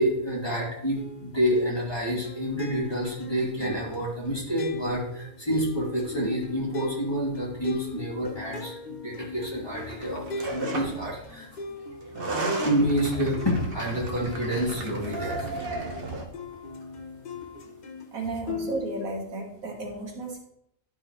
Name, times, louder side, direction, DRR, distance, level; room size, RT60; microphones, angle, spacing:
voice 1, 0.0-11.5 12.2-12.3 12.6-15.6, equal, 20° left, -5 dB, 2.5 m, -28 dB
sound 1, 1.0-18.1 18.5-19.0, left 3 dB, 45° left, 0.6 m, -39 dB
sound 2, 9.7-11.1 12.0-16.2, right 2 dB, 45° right, 1.2 m, -34 dB
voice 2, 18.1-20.4, right 3 dB, 80° right, -1 dB, 2.0 m, -33 dB
11.5 x 5.8 x 3.0 m, 0.75 s
omnidirectional pair, 1.4 m